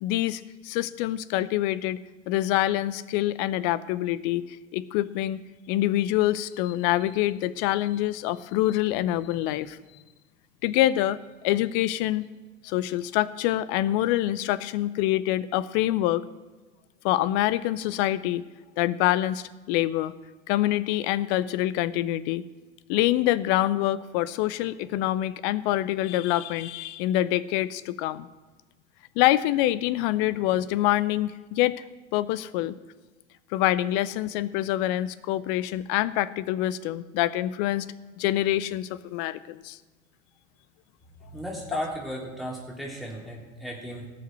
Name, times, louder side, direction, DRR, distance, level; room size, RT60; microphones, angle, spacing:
voice 1, 0.0-2.0 2.3-5.4 5.7-9.8 10.6-11.2 11.4-12.3 12.6-16.2 17.0-18.4 18.8-20.1 20.5-22.4 22.9-28.3 29.2-31.8 32.1-32.8 33.5-37.9 38.2-39.8 41.7-41.8, left 14 dB, 40° left, 16 dB, 0.7 m, -25 dB
voice 2, 41.3-44.0, equal, ahead, -3 dB, 3.2 m, -35 dB
17.5 x 6.6 x 7.5 m, 1.3 s
figure-of-eight pair, 80°, 38 cm